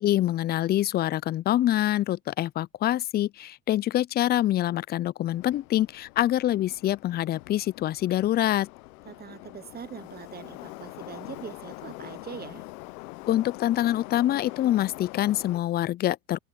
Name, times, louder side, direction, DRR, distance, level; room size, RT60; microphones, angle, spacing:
voice 1, 0.0-8.7 13.3-16.4, left 13 dB, 25° left, 0.4 m, -25 dB
Subway metro underground, 5.3-15.6, left 23 dB, 65° left, 0.8 m, -44 dB
voice 2, 9.0-12.6, right 8 dB, 20° right, 0.8 m, -42 dB
Wind instrument woodwind instrument, 9.6-15.3, right 19 dB, 70° right, 5.3 m, -68 dB
open air
hypercardioid pair, 85°, 47 cm